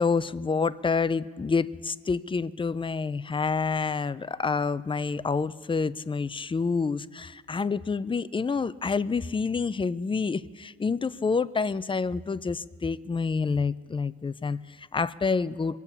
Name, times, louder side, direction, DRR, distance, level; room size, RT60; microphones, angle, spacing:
voice 1, 0.0-15.8, left 4 dB, 20° left, 17 dB, 0.4 m, -28 dB
23.0 x 8.3 x 7.1 m, 1.5 s
cardioid pair, 90°, 30 cm